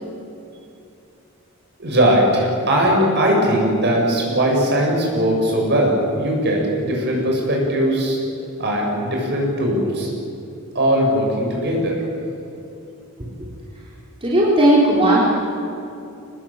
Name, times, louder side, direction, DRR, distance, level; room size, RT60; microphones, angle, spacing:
voice 1, 1.8-8.2 8.6-10.1 10.7-12.0, equal, 50° right, -1 dB, 7.6 m, -19 dB
voice 2, 14.2-15.2, right 1 dB, 25° right, -6 dB, 4.2 m, -15 dB
25.5 x 20.0 x 9.0 m, 2.7 s
head